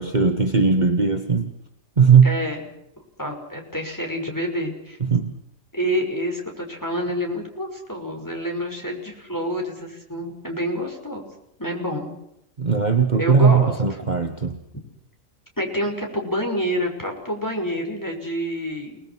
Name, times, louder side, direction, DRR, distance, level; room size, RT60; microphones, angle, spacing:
voice 1, 0.0-1.5 2.0-2.3 5.0-5.4 12.6-14.6, right 5 dB, 35° right, 5 dB, 1.6 m, -18 dB
voice 2, 2.2-2.7 3.2-5.0 5.7-11.2 11.6-12.1 13.2-13.7 15.6-19.0, equal, 15° left, 2 dB, 6.0 m, -27 dB
29.5 x 20.5 x 6.2 m, 0.78 s
omnidirectional pair, 1.4 m